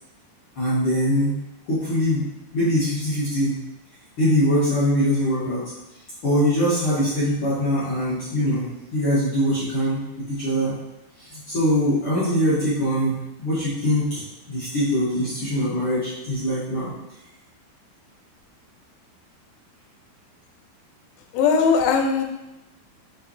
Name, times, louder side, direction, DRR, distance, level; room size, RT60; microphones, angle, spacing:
voice 1, 0.5-1.3 1.6-2.2 2.5-3.5 4.2-5.6 6.2-10.0 10.3-10.7 11.2-14.2 14.5-16.9, equal, 50° left, -12 dB, 1.5 m, -22 dB
voice 2, 21.3-22.2, left 5 dB, 80° left, 3 dB, 2.9 m, -19 dB
7.8 x 4.9 x 3.3 m, 0.98 s
omnidirectional pair, 5.6 m